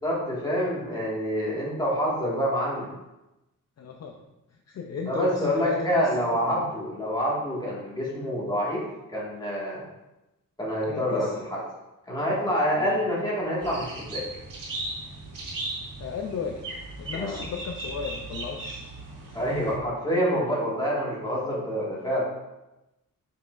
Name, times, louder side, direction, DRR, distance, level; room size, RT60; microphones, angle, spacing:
voice 1, 0.0-2.9 5.0-8.8 9.1-9.8 10.6-11.6 12.1-14.2 17.1-17.4 19.3-22.2, equal, 10° left, -6 dB, 1.8 m, -27 dB
voice 2, 3.8-4.1 4.7-6.7 10.9-11.4 12.7-13.0 16.0-16.6 17.0-18.9 19.2-19.4, left 5 dB, 50° left, 2 dB, 0.5 m, -35 dB
sound 1, 13.6-19.7, right 2 dB, 70° right, 1.8 m, -37 dB
6.8 x 5.5 x 2.5 m, 0.97 s
wide cardioid pair, 175°, 34 cm